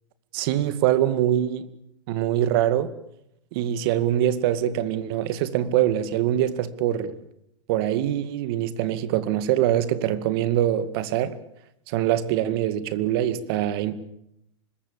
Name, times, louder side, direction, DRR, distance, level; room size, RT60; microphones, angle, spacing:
voice 1, 0.3-1.7 2.1-2.9 3.5-7.1 7.7-11.4 11.9-14.0, right 11 dB, 55° right, 14 dB, 2.2 m, -24 dB
25.5 x 21.5 x 7.1 m, 0.79 s
hypercardioid pair, 110°, 15 cm